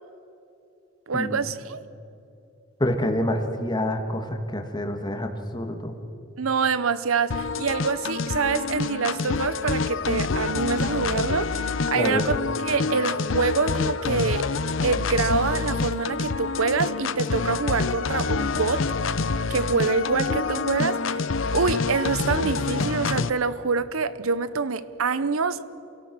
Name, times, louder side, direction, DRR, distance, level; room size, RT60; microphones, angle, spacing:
voice 1, 1.1-1.8 6.4-12.4 12.6-14.5 14.8-18.9 19.5-25.6, right 4 dB, 80° right, 0.8 m, -26 dB
voice 2, 2.8-5.9 11.9-12.3, left 1 dB, 20° left, 1.9 m, -27 dB
sound 1, 7.3-23.3, left 4 dB, 65° left, 0.7 m, -27 dB
28.5 x 17.5 x 6.2 m
head